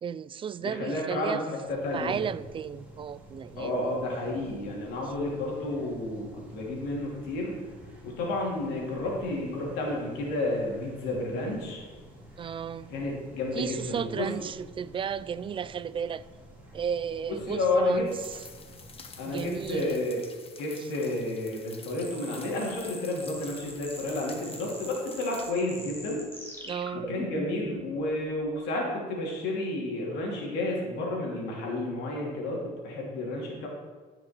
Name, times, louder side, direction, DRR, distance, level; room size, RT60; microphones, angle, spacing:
voice 1, 0.0-1.4 1.9-3.9 12.4-12.9 13.5-16.2 16.7-18.4 19.2-20.0 26.6-27.1, right 7 dB, 30° right, 0.4 m, -34 dB
voice 2, 0.6-2.2 3.6-7.5 8.0-11.8 12.9-14.3 17.3-18.1 19.2-20.2 20.6-26.2 26.9-33.7, left 2 dB, 90° left, 2.9 m, -31 dB
sound 1, 1.6-19.9, equal, 10° right, 3.0 m, -50 dB
sound 2, 18.1-25.5, left 5 dB, 35° left, 1.2 m, -50 dB
sound 3, 21.9-27.8, left 1 dB, 15° left, 2.2 m, -42 dB
15.5 x 6.0 x 4.5 m
cardioid pair, 110°, 17 cm